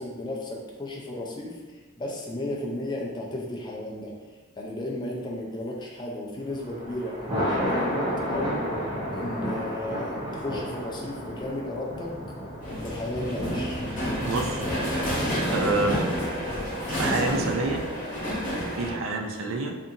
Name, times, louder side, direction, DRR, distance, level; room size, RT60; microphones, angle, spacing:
voice 1, 0.0-4.1 4.6-8.7 9.1-12.2 12.8-13.8 19.4-19.6, left 1 dB, 20° left, -2 dB, 0.4 m, -34 dB
Thunder, 6.4-17.8, equal, 20° right, 0.6 m, -33 dB
sound 1, 12.6-18.9, equal, 40° left, 0.9 m, -29 dB
voice 2, 14.2-14.7 15.5-16.0 16.9-17.8 18.7-19.7, right 3 dB, 65° right, 3 dB, 0.4 m, -28 dB
2.7 x 2.5 x 2.4 m, 1.3 s
head